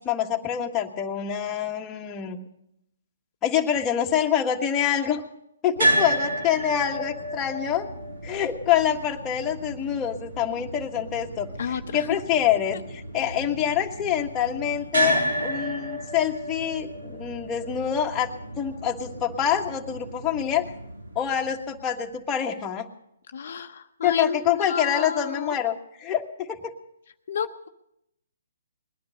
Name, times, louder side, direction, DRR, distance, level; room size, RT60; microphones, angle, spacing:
voice 1, 0.0-2.4 3.4-5.2 5.6-7.9 8.2-20.7 21.1-22.9 24.0-26.7, left 9 dB, 20° left, 1 dB, 1.5 m, -26 dB
sound 1, 5.8-21.9, right 1 dB, 85° right, 7.3 m, -31 dB
voice 2, 11.6-12.1 13.2-13.4 23.3-25.5 27.3-27.7, left 6 dB, 60° left, 6 dB, 0.8 m, -31 dB
20.5 x 10.5 x 6.5 m, 0.81 s
hypercardioid pair, 140°, 0 cm